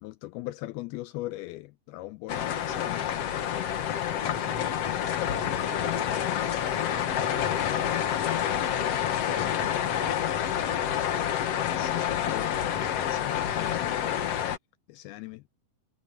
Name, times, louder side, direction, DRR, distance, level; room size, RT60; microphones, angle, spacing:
voice 1, 0.0-3.3 11.6-14.3 14.9-15.4, left 18 dB, 80° left, 2.4 m, -40 dB
sound 1, 2.3-14.6, left 10 dB, 65° left, 1.5 m, -28 dB
voice 2, 4.2-4.9 5.3-6.3 6.6-11.0, left 2 dB, 5° right, 2.9 m, -43 dB
omnidirectional pair, 4.7 m